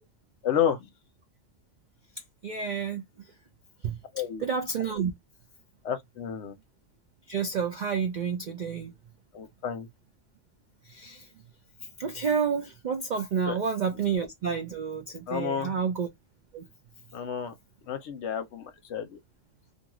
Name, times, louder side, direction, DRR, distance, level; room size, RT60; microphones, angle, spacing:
voice 1, 0.4-0.9 4.1-4.5 5.8-6.5 9.3-9.9 13.4-13.6 15.3-15.8 17.1-17.5 17.8-19.2, left 8 dB, 65° left, 0.8 m, -30 dB
voice 2, 2.4-3.0 3.8-4.0 4.4-5.1 7.3-8.9 10.9-11.3 12.0-16.1 16.5-16.6, right 6 dB, 70° right, 0.4 m, -29 dB
2.6 x 2.3 x 2.9 m
omnidirectional pair, 1.3 m